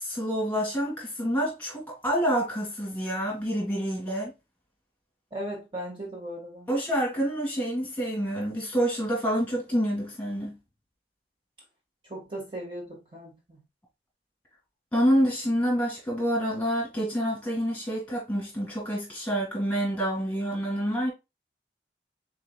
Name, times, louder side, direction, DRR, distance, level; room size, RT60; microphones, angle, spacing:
voice 1, 0.0-4.3 6.7-10.6 14.9-21.1, equal, 10° left, 2.0 m, -27 dB
voice 2, 5.3-6.7 12.1-13.6, right 1 dB, 30° right, 1.6 m, -37 dB
4.8 x 4.1 x 2.3 m
head